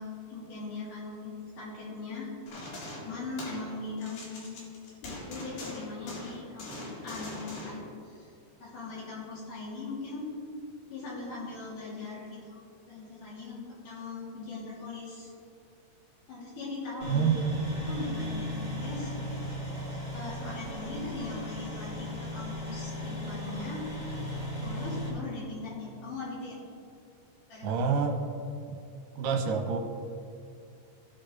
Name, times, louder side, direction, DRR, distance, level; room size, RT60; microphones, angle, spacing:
voice 1, 0.0-2.3 3.0-4.6 5.0-6.7 7.0-8.3 8.6-10.3 10.9-12.6 12.9-15.3 16.3-17.4 17.9-19.1 20.1-23.9 24.6-26.5 27.5-27.7, left 3 dB, 65° left, -7 dB, 4.2 m, -40 dB
sound 1, 2.5-3.7 4.0-7.8, left 2 dB, 85° left, 3.9 m, -41 dB
sound 2, 17.0-25.1, equal, 25° left, 2.8 m, -36 dB
voice 2, 17.1-17.6 27.6-28.2 28.7-28.8 29.2-29.8, right 6 dB, 80° right, 3 dB, 2.5 m, -27 dB
17.0 x 6.0 x 3.9 m, 2.4 s
omnidirectional pair, 3.9 m